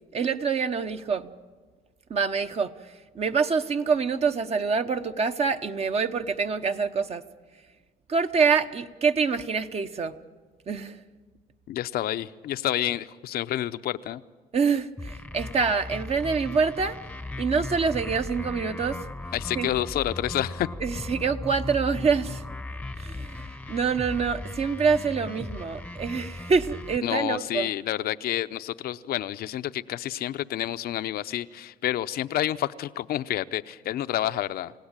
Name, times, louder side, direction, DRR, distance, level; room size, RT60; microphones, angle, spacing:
voice 1, 0.1-1.3 2.1-2.7 3.1-7.2 8.1-10.2 10.7-11.0 14.5-17.0 17.4-19.0 19.5-19.7 20.8-22.4 23.0-27.7, right 5 dB, 40° right, 8 dB, 1.0 m, -26 dB
voice 2, 11.7-14.2 19.3-20.7 27.0-34.7, left 13 dB, 65° left, 12 dB, 0.7 m, -29 dB
sound 1, 15.0-27.0, left 2 dB, 5° left, 0.9 m, -37 dB
28.5 x 17.0 x 8.9 m, 1.4 s
cardioid pair, 110°, 17 cm